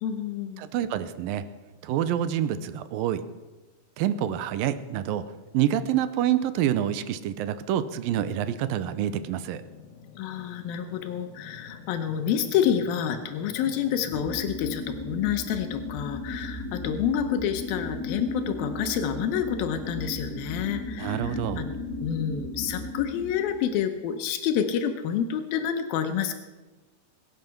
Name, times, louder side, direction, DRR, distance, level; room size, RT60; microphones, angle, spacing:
voice 1, 0.0-0.6 10.2-26.3, left 9 dB, 90° left, 7 dB, 2.8 m, -28 dB
voice 2, 0.6-1.4 1.8-3.2 4.0-5.2 5.5-9.6 21.0-21.7, right 11 dB, 90° right, 13 dB, 2.5 m, -27 dB
sound 1, 7.9-14.4, left 6 dB, 70° left, 2.5 m, -47 dB
sound 2, 14.1-24.0, left 2 dB, 25° left, 4.4 m, -35 dB
22.0 x 9.3 x 5.9 m, 1.2 s
omnidirectional pair, 4.1 m